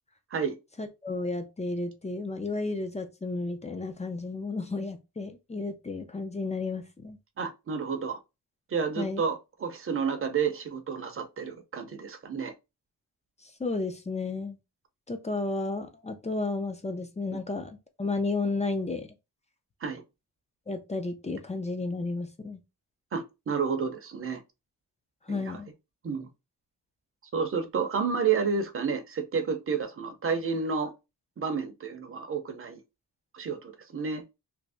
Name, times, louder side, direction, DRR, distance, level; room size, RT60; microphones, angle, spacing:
voice 1, 0.8-7.2 9.0-9.2 13.4-14.6 15.1-19.1 20.7-22.6 25.3-25.7, left 3 dB, 20° left, 0.4 m, -32 dB
voice 2, 7.4-8.2 8.7-12.5 19.8-20.0 23.1-24.4 25.3-25.6 26.0-26.3 27.3-30.9 31.4-32.8 33.3-34.2, right 6 dB, 35° right, 0.6 m, -30 dB
2.8 x 2.6 x 3.4 m
wide cardioid pair, 175°, 39 cm